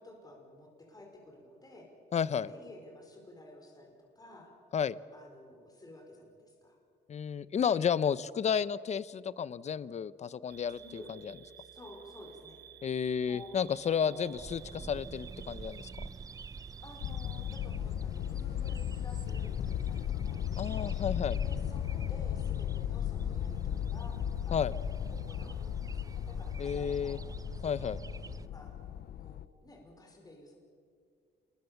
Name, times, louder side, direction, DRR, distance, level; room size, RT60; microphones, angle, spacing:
voice 1, 0.0-1.9 2.3-4.5 5.1-6.8 7.6-8.0 10.7-11.1 11.5-12.6 13.2-14.4 14.8-14.9 16.8-20.4 20.7-21.0 21.4-24.9 25.1-27.2 27.6-28.0 28.5-28.7 29.2-30.6, left 1 dB, 20° left, 1 dB, 5.1 m, -52 dB
voice 2, 2.1-2.5 4.7-5.0 7.1-11.3 12.8-15.9 20.6-21.4 24.5-24.7 26.6-27.2 27.6-28.0, left 7 dB, 40° left, 18 dB, 0.7 m, -32 dB
sound 1, 10.5-17.6, right 9 dB, 65° right, 1.7 m, -53 dB
sound 2, 14.3-28.5, right 4 dB, 20° right, 0.6 m, -47 dB
sound 3, 17.0-29.5, left 10 dB, 65° left, 0.7 m, -36 dB
28.0 x 21.5 x 7.1 m, 2.1 s
cardioid pair, 125°, 18 cm